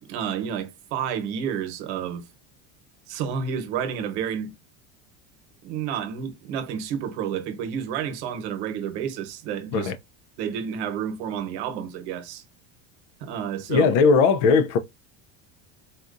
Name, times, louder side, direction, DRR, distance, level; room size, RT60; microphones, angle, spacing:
voice 1, 0.0-2.2 3.1-4.5 5.6-9.9 10.4-12.4 13.2-13.9, right 8 dB, 75° right, 1.0 m, -30 dB
voice 2, 13.7-14.8, left 5 dB, 90° left, 0.6 m, -18 dB
4.2 x 2.3 x 2.5 m
cardioid pair, 180°, 34 cm